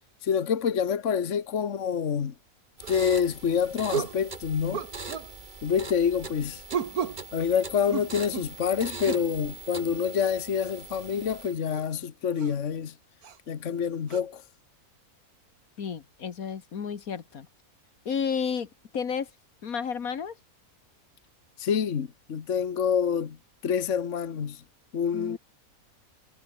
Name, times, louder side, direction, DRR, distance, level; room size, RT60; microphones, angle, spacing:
voice 1, 0.2-2.3 2.9-4.8 5.6-6.6 7.3-12.9 13.5-14.4 21.6-23.4 23.6-24.6 24.9-25.4, left 7 dB, 55° left, 1.6 m, -27 dB
sound 1, 2.8-11.7, right 3 dB, 35° right, 1.9 m, -42 dB
sound 2, 2.8-3.0 3.9-4.2 4.7-5.3 6.7-7.2 7.9-8.5 9.0-9.3 10.9-11.0 11.7-11.8 12.4-12.5 13.2-13.4 14.1-14.2, right 7 dB, 90° right, 1.9 m, -33 dB
voice 2, 15.8-17.5 18.1-19.3 19.6-20.4 25.1-25.4, left 6 dB, 75° left, 1.9 m, -32 dB
omnidirectional pair, 1.5 m